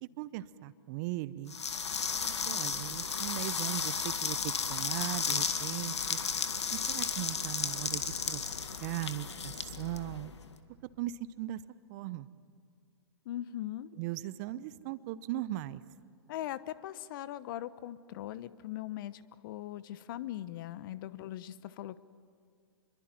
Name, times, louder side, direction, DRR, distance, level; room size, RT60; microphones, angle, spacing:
voice 1, 0.0-1.5 2.2-6.2 6.7-8.4 8.8-10.3 11.0-11.6 11.9-12.3 14.0-15.8, right 15 dB, 40° right, 17 dB, 0.9 m, -38 dB
sound 1, 1.5-10.5, left 6 dB, 80° left, 1.8 m, -34 dB
voice 2, 13.2-13.9 16.3-22.0, left 13 dB, 50° left, 16 dB, 1.1 m, -40 dB
27.0 x 23.0 x 9.1 m, 2.2 s
hypercardioid pair, 115°, 14 cm